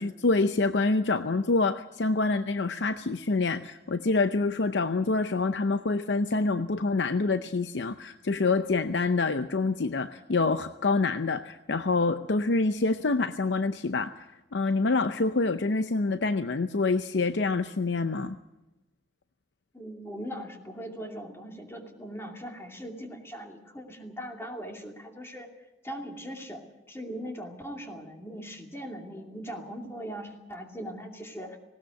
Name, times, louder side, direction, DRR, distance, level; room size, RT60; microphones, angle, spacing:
voice 1, 0.0-18.4, left 3 dB, 85° left, 10 dB, 0.7 m, -26 dB
voice 2, 19.7-25.5 25.8-31.6, equal, 15° left, 2 dB, 2.6 m, -40 dB
19.0 x 18.0 x 8.1 m, 0.94 s
head